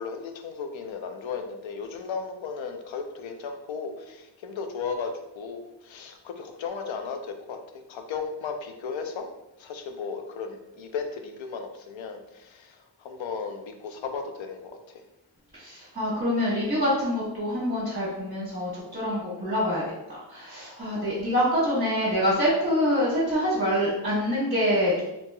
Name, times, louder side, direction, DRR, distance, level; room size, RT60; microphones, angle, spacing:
voice 1, 0.0-7.6 7.9-9.3 9.6-15.0, left 5 dB, 85° left, 6 dB, 0.5 m, -35 dB
voice 2, 15.5-19.8 20.3-25.0, equal, 20° right, -9 dB, 1.0 m, -25 dB
2.8 x 2.8 x 2.2 m, 0.91 s
wide cardioid pair, 90°, 45 cm